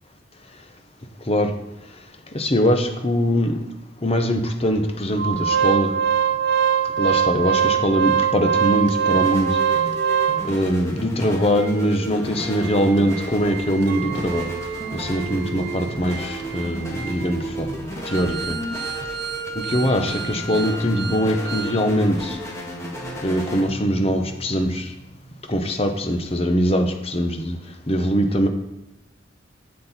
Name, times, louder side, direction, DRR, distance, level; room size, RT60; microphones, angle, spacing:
voice 1, 2.3-3.6 4.0-5.9 7.0-9.6 10.4-14.5 14.9-17.7 18.1-18.5 19.5-22.4 23.2-24.9 25.5-27.6 27.9-28.5, equal, 30° left, 5 dB, 1.1 m, -22 dB
Organ, 5.2-10.7 11.2-11.3 11.6-11.7 12.2-21.8 22.1-22.2, right 8 dB, 70° right, 1.4 m, -25 dB
sound 1, 8.2-26.4, right 1 dB, 15° left, 2.1 m, -34 dB
Chink clink, 13.9-19.0, right 12 dB, 50° right, 1.1 m, -39 dB
12.0 x 7.6 x 4.5 m, 0.95 s
head